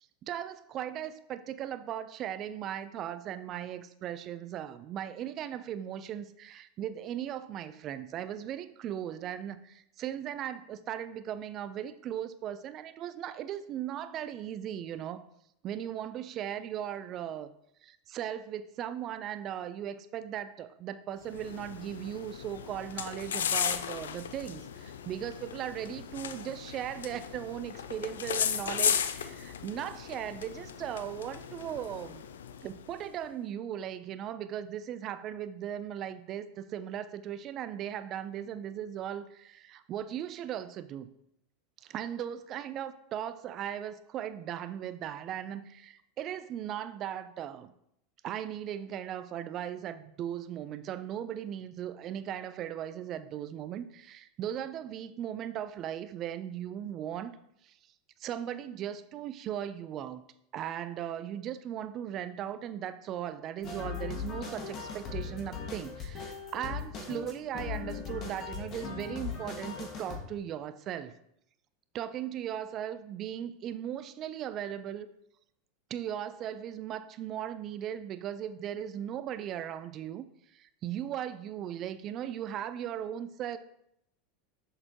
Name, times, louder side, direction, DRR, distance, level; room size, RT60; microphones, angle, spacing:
voice 1, 0.0-15.2 15.6-17.5 17.8-32.3 32.6-41.1 41.8-47.7 48.2-57.4 57.6-57.8 58.2-60.2 60.5-71.2 71.9-75.1 75.9-80.3 80.5-83.6, right 10 dB, 45° right, 13 dB, 0.5 m, -38 dB
sound 1, 21.2-33.0, left 8 dB, 80° left, 0.4 m, -36 dB
sound 2, 63.6-70.2, left 5 dB, 45° left, 1.8 m, -39 dB
6.6 x 6.5 x 2.9 m, 0.76 s
hypercardioid pair, 90°, 0 cm